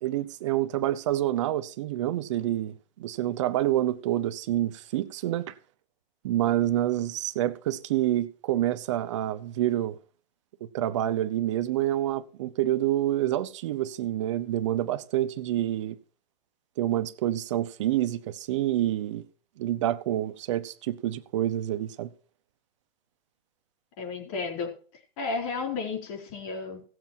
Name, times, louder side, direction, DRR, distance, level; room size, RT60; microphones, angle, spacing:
voice 1, 0.0-5.5 6.2-10.0 10.7-16.0 16.8-19.2 19.6-22.1, right 13 dB, 30° right, 0.7 m, -27 dB
voice 2, 24.0-24.7 25.2-26.9, left 4 dB, 35° left, 4.3 m, -32 dB
17.0 x 7.5 x 4.5 m
hypercardioid pair, 150°, 30 cm